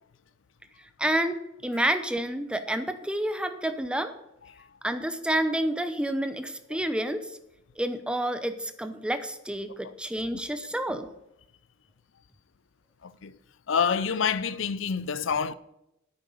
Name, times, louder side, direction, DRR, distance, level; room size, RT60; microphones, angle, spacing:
voice 1, 1.0-1.4 1.6-4.1 4.8-7.2 7.8-11.1, right 1 dB, 5° right, 0.7 m, -29 dB
voice 2, 13.0-13.3 13.7-15.5, left 6 dB, 65° left, 0.5 m, -27 dB
8.9 x 8.8 x 5.5 m
head